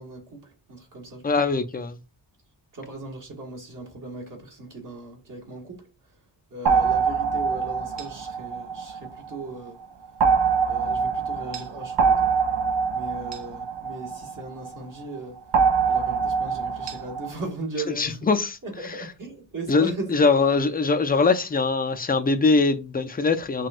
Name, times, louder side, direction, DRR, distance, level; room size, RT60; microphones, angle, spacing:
voice 1, 0.0-1.3 2.7-5.9 6.5-9.8 10.7-12.4 12.9-15.4 15.9-18.3 18.6-20.3, right 2 dB, 45° right, 1.3 m, -37 dB
voice 2, 1.2-2.0 18.0-18.6 18.8-19.0 19.7-23.7, left 4 dB, 20° left, 0.4 m, -22 dB
sound 1, 6.7-9.4 10.2-14.7 15.5-17.3, right 5 dB, 70° right, 0.6 m, -24 dB
5.9 x 2.3 x 2.5 m
wide cardioid pair, 110°, 43 cm